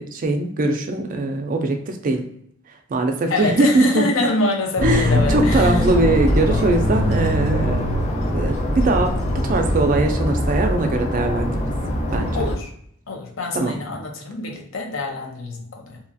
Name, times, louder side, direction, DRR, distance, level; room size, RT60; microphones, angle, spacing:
voice 1, 0.0-2.2 2.9-4.1 4.8-7.9 8.3-11.7 12.1-12.4 13.5-13.8, right 2 dB, 40° right, 5 dB, 0.4 m, -21 dB
voice 2, 3.3-5.8 12.3-12.7 13.1-16.0, left 2 dB, 70° left, 2 dB, 0.6 m, -25 dB
sound 1, 4.8-12.6, left 1 dB, 35° left, 0.5 m, -22 dB
2.8 x 2.4 x 2.5 m, 0.66 s
head